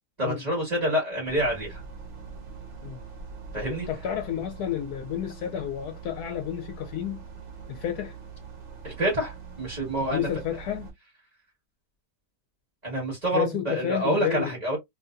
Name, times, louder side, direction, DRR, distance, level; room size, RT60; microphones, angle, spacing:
voice 1, 0.2-1.8 3.5-3.8 8.8-10.3 12.8-14.8, right 1 dB, 25° right, 1.9 m, -27 dB
sound 1, 1.2-10.9, right 5 dB, 45° right, 1.3 m, -43 dB
voice 2, 3.7-7.2 7.7-8.2 10.0-10.9 13.3-14.5, left 10 dB, 75° left, 1.1 m, -30 dB
3.9 x 2.8 x 2.5 m
omnidirectional pair, 1.8 m